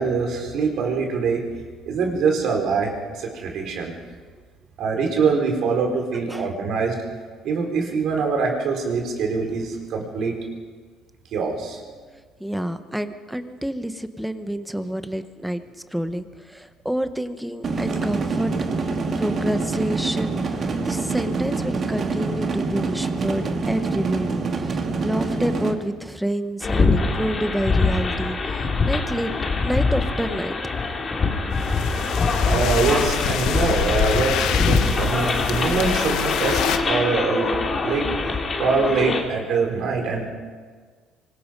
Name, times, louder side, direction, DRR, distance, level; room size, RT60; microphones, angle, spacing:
voice 1, 0.0-1.4 1.9-3.9 4.8-7.0 7.4-10.4 11.3-11.8 32.5-37.5 37.8-38.1 38.6-40.3, right 4 dB, 60° right, 1 dB, 4.5 m, -23 dB
voice 2, 12.4-15.6 15.9-18.5 19.2-20.3 20.8-29.3 29.6-30.5, equal, ahead, 10 dB, 1.0 m, -28 dB
sound 1, 17.6-25.7, right 4 dB, 35° right, 2.1 m, -26 dB
sound 2, 26.6-39.2, left 4 dB, 30° left, 2.6 m, -24 dB
sound 3, 31.5-36.8, left 11 dB, 75° left, 1.1 m, -26 dB
24.5 x 20.0 x 5.3 m, 1.5 s
cardioid pair, 140°, 0 cm